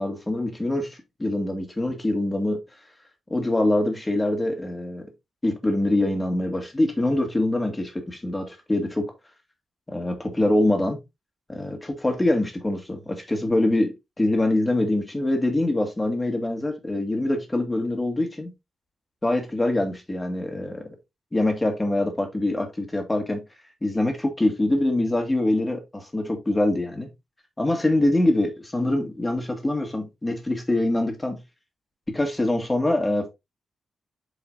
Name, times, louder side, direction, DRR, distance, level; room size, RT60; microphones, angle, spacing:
voice 1, 0.0-2.6 3.3-5.1 5.4-9.1 9.9-11.0 11.5-18.5 19.2-20.9 21.3-23.4 23.8-27.1 27.6-31.4 32.1-33.3, left 1 dB, 15° left, 2.0 m, -24 dB
8.1 x 4.9 x 2.6 m
wide cardioid pair, 120°, 0 cm